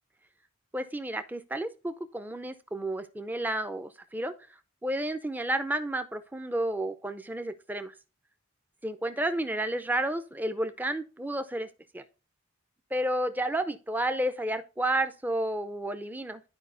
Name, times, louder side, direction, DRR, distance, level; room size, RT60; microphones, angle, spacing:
voice 1, 0.7-4.3 4.8-7.9 8.8-11.7 11.9-12.0 12.9-16.4, right 1 dB, 10° right, 10 dB, 0.5 m, -31 dB
12.5 x 4.8 x 2.5 m, 0.33 s
head